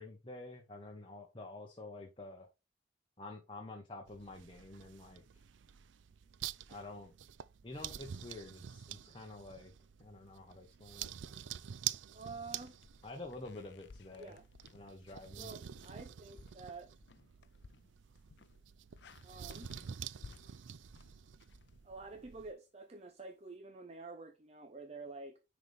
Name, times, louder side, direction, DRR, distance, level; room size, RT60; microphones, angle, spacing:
voice 1, 0.0-2.5 3.2-5.2 6.7-7.1 7.6-9.7 10.0-11.1 13.0-14.4 14.7-15.5, left 2 dB, 30° left, 1.1 m, -49 dB
sound 1, 4.1-22.5, right 10 dB, 85° right, 0.4 m, -47 dB
voice 2, 12.1-12.7 14.2-14.4 15.4-16.9 19.2-19.7 21.8-25.4, right 3 dB, 35° right, 0.7 m, -48 dB
sound 2, 12.5-22.4, left 4 dB, 70° left, 0.5 m, -59 dB
9.9 x 4.1 x 3.5 m
head